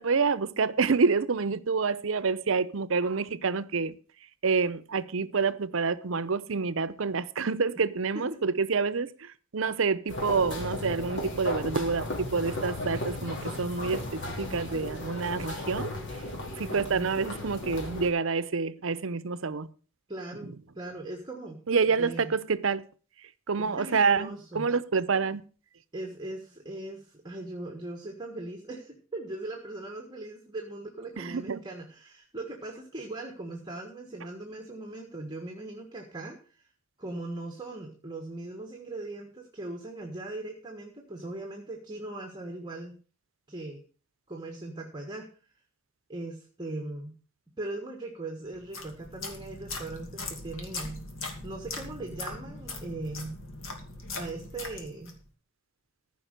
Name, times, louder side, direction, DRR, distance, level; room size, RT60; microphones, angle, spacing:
voice 1, 0.0-3.9 4.4-9.1 9.5-15.9 16.6-19.7 21.7-22.9 23.5-25.4 31.2-31.6, right 4 dB, 70° right, 0.7 m, -27 dB
sound 1, 10.1-18.1, left 1 dB, 55° left, 3.2 m, -35 dB
voice 2, 16.6-17.1 20.1-22.3 23.6-24.7 25.9-36.4 37.0-43.0 43.5-43.8 44.3-45.3 46.1-47.2 47.6-51.0 51.4-53.4 54.1-55.1, right 2 dB, 20° right, 1.4 m, -39 dB
sound 2, 48.5-55.2, left 3 dB, 75° left, 2.5 m, -40 dB
14.5 x 5.4 x 6.6 m
head